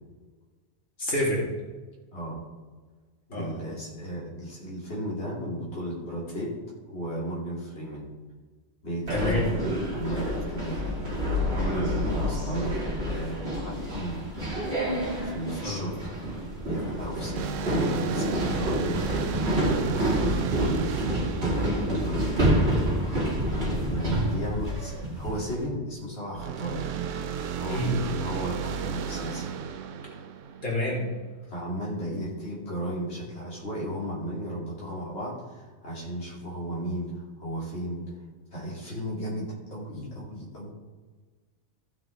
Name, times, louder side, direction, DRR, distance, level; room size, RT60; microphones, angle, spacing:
voice 1, 1.0-1.5 3.3-3.5 9.1-9.5 15.6-15.9 27.7-28.0 30.6-31.1 39.9-40.1, equal, 85° left, -5 dB, 3.3 m, -28 dB
voice 2, 2.1-2.4 3.3-6.6 6.9-8.1 8.8-11.1 11.5-12.8 13.0-14.2 14.8-16.1 16.7-20.8 21.4-22.7 23.9-26.9 27.5-29.5 31.5-38.2 38.5-40.7, equal, 60° left, -6 dB, 2.8 m, -34 dB
sound 1, 9.1-25.5, equal, 55° right, 2.5 m, -28 dB
sound 2, 17.3-22.8 26.3-31.1, right 7 dB, 80° right, 1.0 m, -34 dB
15.5 x 7.3 x 3.3 m, 1.4 s
omnidirectional pair, 1.3 m